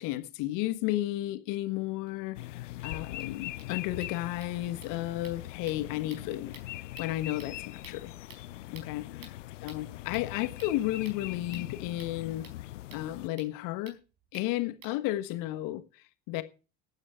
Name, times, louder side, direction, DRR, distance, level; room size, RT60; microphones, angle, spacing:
voice 1, 0.0-6.5 7.0-8.1 8.7-9.1 9.6-12.5 12.9-14.0 14.3-16.4, left 15 dB, 60° left, 1.4 m, -33 dB
sound 1, 2.1-2.2 2.4-2.5 2.8-2.9 3.1-15.3, right 5 dB, 60° right, 4.7 m, -56 dB
sound 2, 2.3-13.3, left 16 dB, 80° left, 0.5 m, -42 dB
13.5 x 9.0 x 5.0 m
figure-of-eight pair, 60°, 36 cm